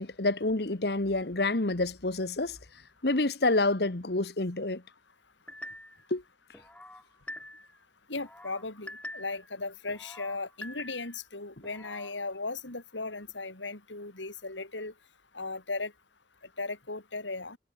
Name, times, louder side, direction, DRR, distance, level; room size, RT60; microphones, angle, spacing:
voice 1, 0.0-2.6 3.0-4.8 6.1-6.2, left 2 dB, 60° left, 1.4 m, -28 dB
sound 1, 5.5-6.1 6.5-7.8 8.1-9.5 9.9-11.2 11.6-12.1, left 1 dB, 5° left, 4.1 m, -45 dB
voice 2, 8.1-14.9 15.3-15.9 16.6-17.6, left 3 dB, 90° left, 4.0 m, -37 dB
head